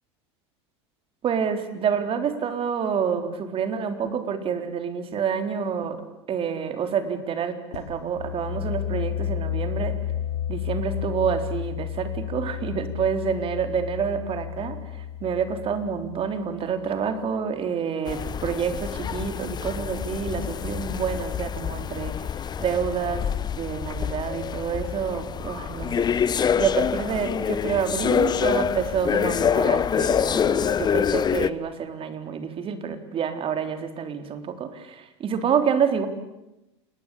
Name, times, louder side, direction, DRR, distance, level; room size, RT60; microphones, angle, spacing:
voice 1, 1.2-6.0 6.3-10.0 10.5-22.3 22.6-23.2 23.5-36.1, right 7 dB, 40° right, 8 dB, 3.9 m, -28 dB
sound 1, 7.7-17.3, left 10 dB, 80° left, 2.2 m, -32 dB
sound 2, 18.1-31.5, left 8 dB, 30° left, 1.0 m, -26 dB
29.0 x 20.0 x 8.7 m, 0.94 s
hypercardioid pair, 90°, 14 cm